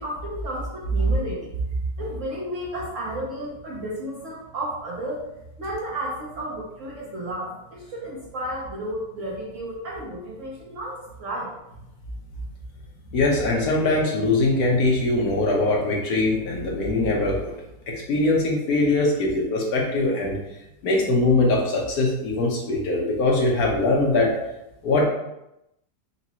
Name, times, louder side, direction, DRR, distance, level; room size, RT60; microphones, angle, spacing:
voice 1, 0.0-1.5 2.0-11.5, right 1 dB, 55° right, -5 dB, 1.0 m, -33 dB
voice 2, 13.1-17.5 17.9-20.4 20.8-24.3 24.8-25.1, left 2 dB, 65° left, -1 dB, 1.2 m, -22 dB
3.9 x 2.3 x 4.1 m, 0.87 s
omnidirectional pair, 1.8 m